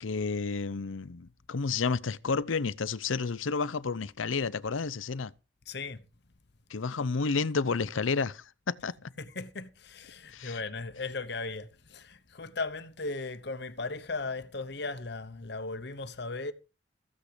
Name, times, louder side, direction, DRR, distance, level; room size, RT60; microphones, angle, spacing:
voice 1, 0.0-5.3 6.7-9.1 10.3-10.6, left 4 dB, 85° left, 0.7 m, -31 dB
voice 2, 5.7-6.0 9.2-16.5, left 3 dB, 55° left, 1.0 m, -37 dB
14.5 x 8.4 x 5.1 m
head